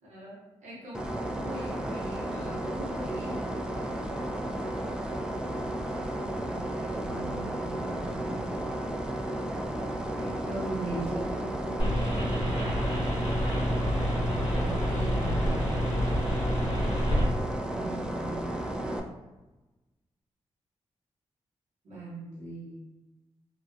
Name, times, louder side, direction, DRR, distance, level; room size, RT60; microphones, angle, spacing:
voice 1, 0.0-3.4 6.4-8.6 9.1-9.2 10.1-13.1 14.5-15.7 17.7-18.5 21.8-22.8, right 1 dB, 75° right, -7 dB, 0.8 m, -40 dB
sound 1, 0.9-19.0, right 1 dB, 5° right, 0.4 m, -33 dB
sound 2, 11.8-17.2, equal, 50° left, 0.9 m, -28 dB
2.3 x 2.3 x 2.3 m, 1.1 s
supercardioid pair, 40°, 12 cm